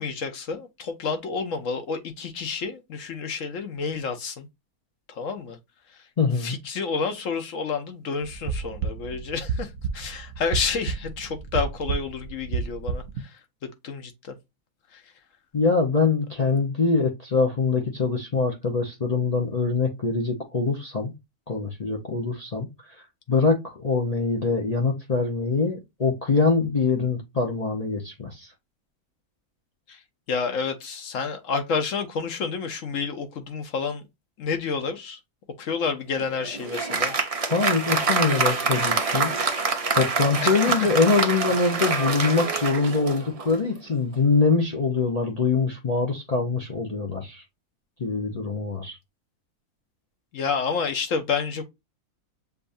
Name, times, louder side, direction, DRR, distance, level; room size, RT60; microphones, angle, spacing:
voice 1, 0.0-4.5 5.1-5.6 5.9-6.1 6.4-13.4 13.8-14.3 14.9-15.1 29.9-30.0 30.3-34.0 34.4-35.2 35.6-37.1 40.4-40.6 50.3-51.6, left 5 dB, 65° left, 1.1 m, -29 dB
voice 2, 6.2-6.6 15.5-21.1 21.5-22.7 23.3-28.5 37.5-39.3 39.9-47.4 48.0-49.0, left 4 dB, 35° left, 0.7 m, -24 dB
sound 1, 8.2-13.2, right 5 dB, 70° right, 1.0 m, -31 dB
Applause, 36.1-43.7, right 4 dB, 35° right, 0.5 m, -26 dB
6.9 x 2.6 x 2.5 m
omnidirectional pair, 1.5 m